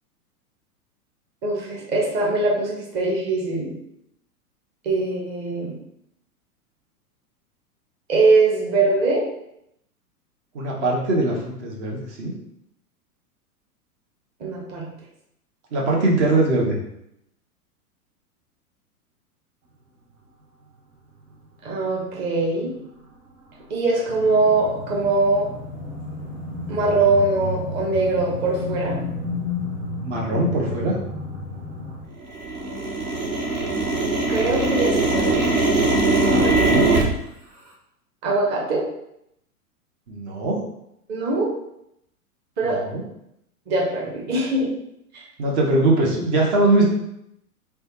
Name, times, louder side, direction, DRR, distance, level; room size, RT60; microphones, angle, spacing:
voice 1, 1.4-3.7 4.8-5.7 8.1-9.2 14.4-14.9 21.6-22.7 23.7-25.5 26.7-29.0 34.3-35.7 38.2-38.8 41.1-41.5 42.6-42.8 43.7-44.7 45.1-45.2, right 3 dB, 20° right, -3 dB, 0.8 m, -22 dB
voice 2, 10.5-12.3 15.7-16.8 30.0-31.0 36.3-36.9 40.1-40.6 42.6-43.0 45.4-46.8, right 2 dB, 50° right, -1 dB, 1.0 m, -21 dB
sound 1, 24.1-32.1, left 2 dB, 20° left, 0.4 m, -32 dB
sound 2, 26.2-26.3 26.9-27.0 27.6-27.9 28.4-28.5 28.7-29.3 29.6-31.9 32.2-37.0, right 2 dB, 75° right, 0.8 m, -22 dB
3.3 x 2.2 x 2.9 m, 0.77 s
figure-of-eight pair, 100°, 45 cm